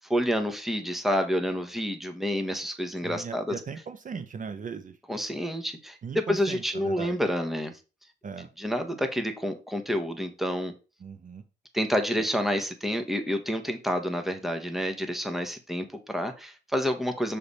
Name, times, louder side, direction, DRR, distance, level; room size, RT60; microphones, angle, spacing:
voice 1, 0.0-3.4 5.1-7.7 8.6-10.7 11.7-17.4, equal, ahead, 1.1 m, -29 dB
voice 2, 3.0-5.0 6.0-7.2 8.2-8.5 11.0-11.4 12.2-12.3, right 6 dB, 40° right, 0.8 m, -38 dB
6.8 x 3.3 x 4.1 m
cardioid pair, 90°, 20 cm